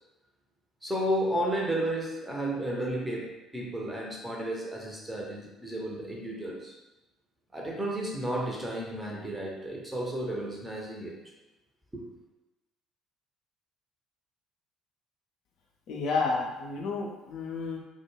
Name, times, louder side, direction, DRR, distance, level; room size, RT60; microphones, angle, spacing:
voice 1, 0.8-6.7 7.5-11.2 11.9-12.1, right 1 dB, 10° right, -2 dB, 0.6 m, -32 dB
voice 2, 15.9-17.8, left 4 dB, 55° left, -1 dB, 0.4 m, -31 dB
2.2 x 2.2 x 3.0 m, 1.0 s
figure-of-eight pair, 50°, 0 cm